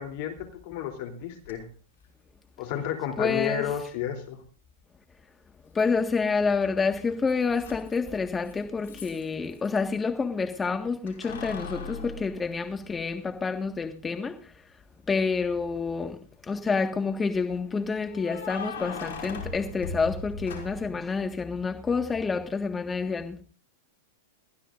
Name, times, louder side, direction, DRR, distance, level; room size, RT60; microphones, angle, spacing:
voice 1, 0.0-1.6 2.6-4.4, left 9 dB, 55° left, 3.3 m, -32 dB
Keys jangling, 1.4-1.5 3.4-3.5 5.8-6.3 6.6-9.8 11.1-13.2 13.7-13.8 15.6-16.1 18.1-21.0, left 4 dB, 70° left, 5.9 m, -39 dB
voice 2, 3.2-3.7 5.7-14.5 15.1-23.4, left 4 dB, 15° left, 1.7 m, -28 dB
21.5 x 15.0 x 2.6 m
hypercardioid pair, 120°, 0 cm